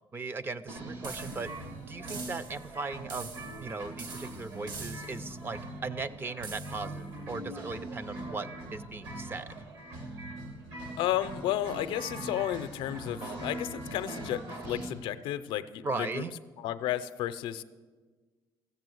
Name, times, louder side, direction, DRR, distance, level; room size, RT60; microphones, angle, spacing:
voice 1, 0.1-3.3 3.6-9.5 15.8-16.3, right 3 dB, 25° right, 14 dB, 0.5 m, -38 dB
sound 1, 0.7-14.9, right 1 dB, 70° right, 2.4 m, -42 dB
sound 2, 1.0-1.6 2.1-2.7 3.1-3.7 4.0-5.3 6.4-6.9, right 4 dB, 55° right, 1.5 m, -45 dB
voice 2, 11.0-16.2 16.6-17.6, left 12 dB, 85° left, 12 dB, 0.6 m, -32 dB
15.0 x 7.6 x 7.8 m, 1.4 s
cardioid pair, 145°, 9 cm